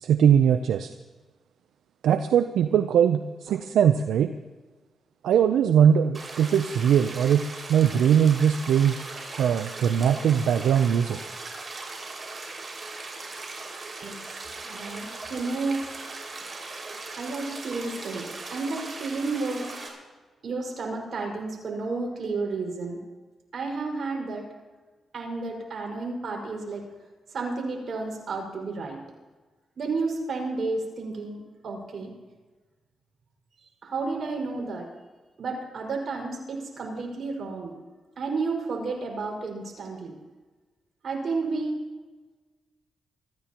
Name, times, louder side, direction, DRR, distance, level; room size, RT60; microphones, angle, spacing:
voice 1, 0.0-0.9 2.0-4.3 5.2-8.9 9.4-11.2, right 8 dB, 85° right, 9 dB, 0.5 m, -21 dB
sound 1, 6.1-19.9, right 3 dB, 40° right, 5.3 m, -39 dB
voice 2, 14.6-15.8 17.2-19.7 20.4-23.0 23.5-24.5 25.1-26.8 27.3-29.0 29.8-32.1 33.8-34.9 35.4-37.7 38.2-40.1 41.0-41.7, right 3 dB, 60° right, 0 dB, 5.3 m, -31 dB
24.5 x 14.5 x 3.0 m, 1.3 s
cardioid pair, 60°, 0 cm